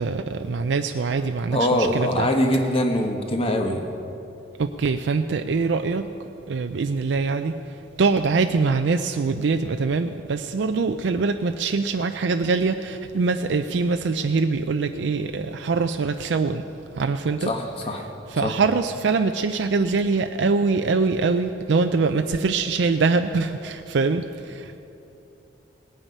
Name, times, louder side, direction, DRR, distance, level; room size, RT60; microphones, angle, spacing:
voice 1, 0.0-2.3 4.6-6.1 6.5-7.6 8.0-16.6 17.0-17.5 18.3-24.8, right 4 dB, 75° right, 7 dB, 0.4 m, -23 dB
voice 2, 1.5-3.8 17.4-18.0 18.4-18.6, left 1 dB, 30° left, 4 dB, 1.2 m, -23 dB
18.5 x 9.0 x 5.4 m, 2.8 s
head